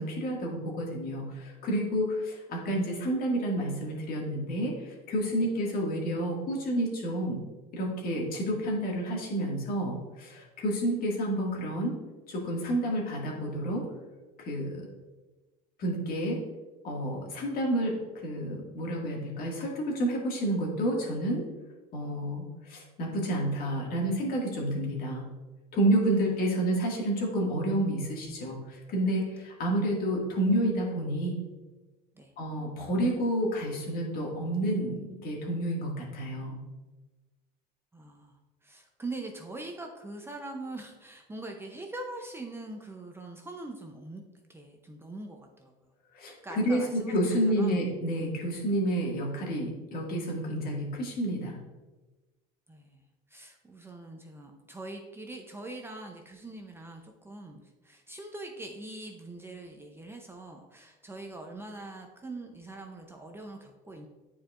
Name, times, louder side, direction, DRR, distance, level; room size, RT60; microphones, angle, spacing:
voice 1, 0.0-7.4 7.7-11.9 12.3-13.8 14.4-14.8 15.8-16.4 16.8-21.4 21.9-25.3 25.7-31.4 32.4-36.6 46.1-51.6, right 1 dB, 50° left, -2 dB, 1.9 m, -30 dB
voice 2, 37.9-44.2 44.5-45.7 46.2-47.8 52.7-53.0 53.3-64.1, right 2 dB, 10° right, 2 dB, 0.6 m, -43 dB
9.2 x 4.6 x 2.5 m, 1.2 s
supercardioid pair, 110°, 19 cm